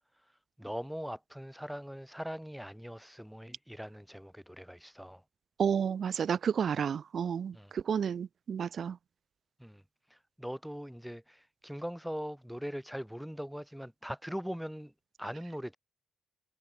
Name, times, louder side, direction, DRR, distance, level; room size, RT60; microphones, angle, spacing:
voice 1, 0.6-5.2 7.5-7.7 9.6-9.8 10.1-14.9 15.2-15.8, equal, ahead, 6.9 m, -41 dB
voice 2, 5.6-9.0, right 7 dB, 55° right, 0.9 m, -31 dB
cardioid pair, 105°, 0 cm